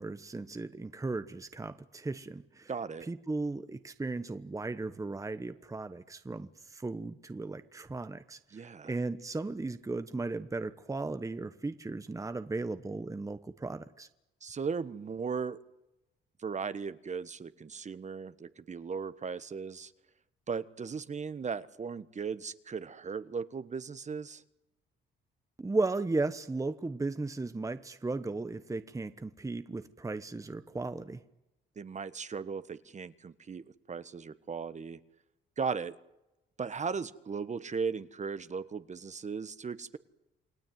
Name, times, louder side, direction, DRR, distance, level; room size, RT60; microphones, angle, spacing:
voice 1, 0.0-2.7 3.1-14.1 25.6-31.2, right 3 dB, 15° right, 11 dB, 1.1 m, -36 dB
voice 2, 2.7-3.1 8.5-9.0 14.4-15.6 16.4-19.9 20.5-24.4 31.8-35.0 35.6-36.0 36.6-40.0, right 5 dB, 35° right, 13 dB, 1.3 m, -37 dB
28.5 x 19.0 x 9.3 m, 0.93 s
cardioid pair, 90°, 20 cm